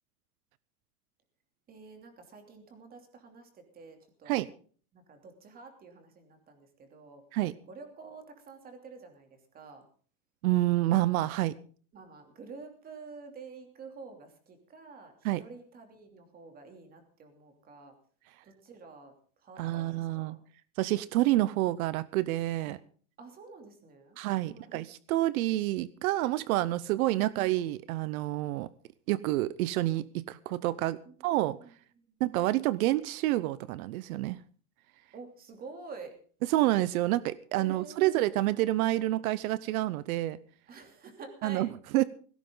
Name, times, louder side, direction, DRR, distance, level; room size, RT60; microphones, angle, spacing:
voice 1, 1.7-4.4 4.9-7.2 7.7-9.8 11.9-17.9 18.4-19.1 19.4-20.4 22.7-22.8 23.2-24.2 24.4-24.7 31.0-31.2 31.5-31.7 35.1-36.1 37.5-38.3 40.7-41.7, right 4 dB, 20° right, 6 dB, 3.0 m, -49 dB
voice 2, 10.4-11.5 15.2-15.4 19.6-20.4 20.8-22.8 24.2-28.7 29.1-31.0 31.2-31.6 32.2-34.4 36.5-40.4 41.4-42.0, right 16 dB, 80° right, 17 dB, 0.9 m, -28 dB
18.5 x 17.0 x 3.9 m, 0.43 s
supercardioid pair, 180°, 42 cm